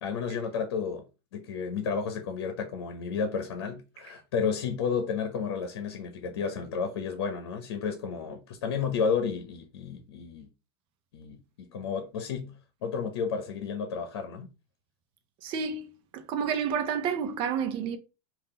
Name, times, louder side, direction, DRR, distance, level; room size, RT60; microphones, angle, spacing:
voice 1, 0.0-1.0 1.3-10.5 11.1-14.5, left 6 dB, 75° left, 0.9 m, -32 dB
voice 2, 15.4-18.0, right 7 dB, 45° right, 0.7 m, -30 dB
3.7 x 2.6 x 3.7 m
supercardioid pair, 135°, 13 cm